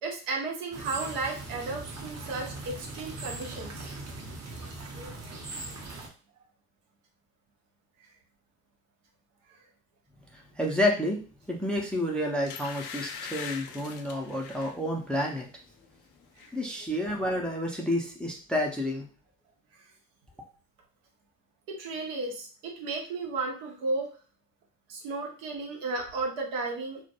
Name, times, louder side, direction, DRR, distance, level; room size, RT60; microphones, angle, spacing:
voice 1, 0.0-3.9 4.9-5.1 16.4-16.5 21.7-24.1 24.9-27.0, right 3 dB, 75° right, 1 dB, 0.8 m, -34 dB
sound 1, 0.7-6.1, right 2 dB, 35° right, 0.7 m, -40 dB
voice 2, 10.3-11.2 11.5-15.5 16.5-19.1, left 1 dB, ahead, 1 dB, 0.4 m, -29 dB
sound 2, 11.8-11.9 12.5-14.8 15.2-15.5 15.8-16.5 16.8-16.9, left 7 dB, 55° left, 0.5 m, -41 dB
2.2 x 2.1 x 2.8 m, 0.39 s
hypercardioid pair, 45°, 46 cm